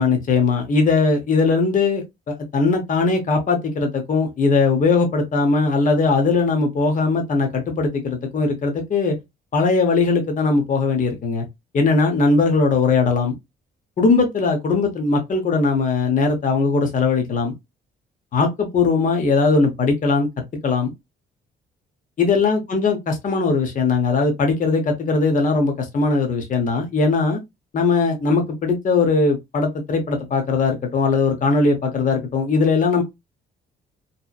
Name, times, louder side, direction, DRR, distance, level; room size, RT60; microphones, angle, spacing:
voice 1, 0.0-9.1 9.5-11.4 11.7-13.3 14.0-17.5 18.3-20.3 20.6-20.9 22.2-27.4 27.7-33.0, left 4 dB, 40° left, 0.7 m, -19 dB
2.8 x 2.0 x 2.2 m
cardioid pair, 90°, 20 cm